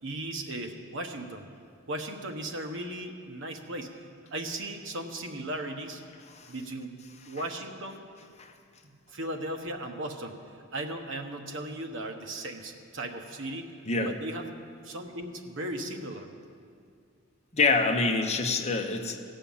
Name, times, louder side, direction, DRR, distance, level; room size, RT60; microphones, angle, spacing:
voice 1, 0.0-1.5 1.9-6.0 6.5-7.0 7.3-8.0 8.8-13.7 14.0-14.5 14.8-16.3, right 1 dB, 65° right, 4 dB, 1.1 m, -37 dB
voice 2, 17.5-19.2, left 3 dB, 35° left, 5 dB, 0.8 m, -26 dB
16.5 x 5.6 x 7.1 m, 2.3 s
head